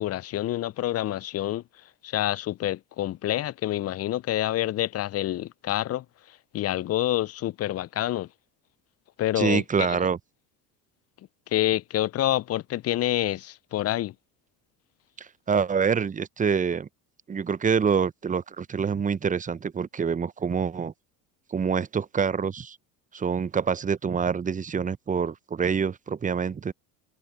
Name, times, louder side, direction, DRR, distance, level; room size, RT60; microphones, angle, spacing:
voice 1, 0.0-1.6 2.0-6.0 6.5-8.3 9.2-10.0 11.5-14.1, left 14 dB, 35° left, 0.5 m, -27 dB
voice 2, 9.4-10.2 15.2-16.9 17.3-20.9 21.5-22.8 23.1-26.7, right 6 dB, 15° right, 0.6 m, -26 dB
hypercardioid pair, 75°, 47 cm